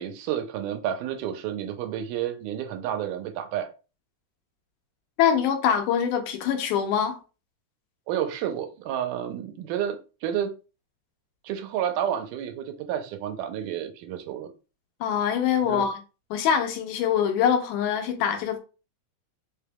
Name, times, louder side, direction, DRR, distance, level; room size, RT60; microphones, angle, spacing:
voice 1, 0.0-3.7 8.1-10.5 11.4-14.5 15.6-15.9, right 10 dB, 90° right, 2.1 m, -30 dB
voice 2, 5.2-7.2 15.0-16.0 16.3-18.6, left 8 dB, 85° left, 2.2 m, -24 dB
5.1 x 3.4 x 2.2 m
omnidirectional pair, 3.6 m